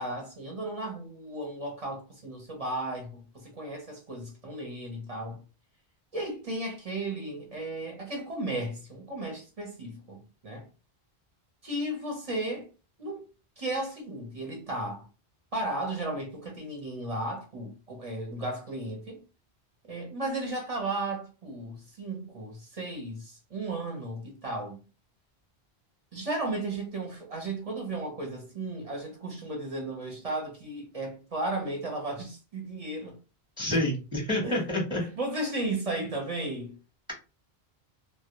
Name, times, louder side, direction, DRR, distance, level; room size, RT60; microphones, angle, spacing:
voice 1, 0.0-5.4 6.1-10.7 11.6-12.7 13.0-13.2 13.6-15.1 15.5-19.2 19.8-24.8 26.1-33.2 34.4-34.7 35.0-36.7, right 2 dB, 40° right, 0.6 m, -35 dB
voice 2, 33.6-35.0, left 1 dB, 5° right, 0.7 m, -28 dB
2.1 x 2.0 x 2.8 m
omnidirectional pair, 1.1 m